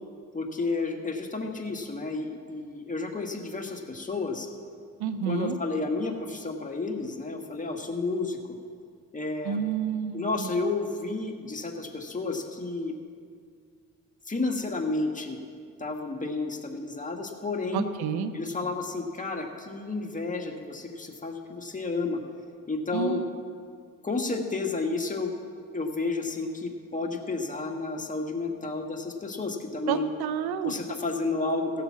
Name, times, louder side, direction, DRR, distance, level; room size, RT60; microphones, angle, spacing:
voice 1, 0.3-4.5 5.3-8.4 9.1-9.6 10.1-12.9 14.3-15.4 15.8-17.9 18.3-22.2 22.7-23.2 24.0-30.1 30.6-31.8, left 3 dB, 20° left, 2 dB, 1.7 m, -31 dB
voice 2, 5.0-5.6 9.4-10.5 17.7-18.3 22.9-23.3 29.9-30.7, right 7 dB, 80° right, 9 dB, 0.9 m, -29 dB
16.0 x 6.7 x 7.4 m, 2.2 s
supercardioid pair, 60°, 37 cm